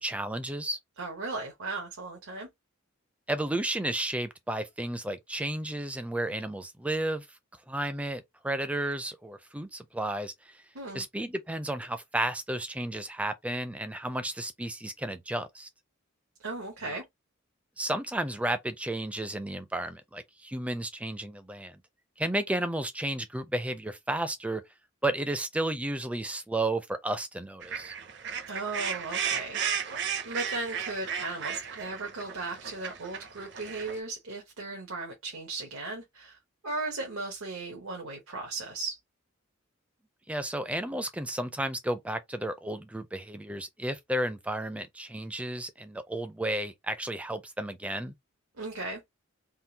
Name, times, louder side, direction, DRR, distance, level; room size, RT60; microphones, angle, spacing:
voice 1, 0.0-0.8 3.3-7.3 7.7-10.6 10.9-15.7 16.8-17.0 17.8-21.8 22.2-24.6 25.0-27.9 40.3-48.1, right 1 dB, 5° right, 0.4 m, -32 dB
voice 2, 1.0-2.5 10.7-11.0 16.4-17.0 28.4-36.4 36.6-39.0 48.6-49.0, right 3 dB, 80° right, 1.0 m, -36 dB
sound 1, 27.6-34.0, right 7 dB, 55° right, 0.6 m, -35 dB
3.7 x 2.4 x 2.8 m
head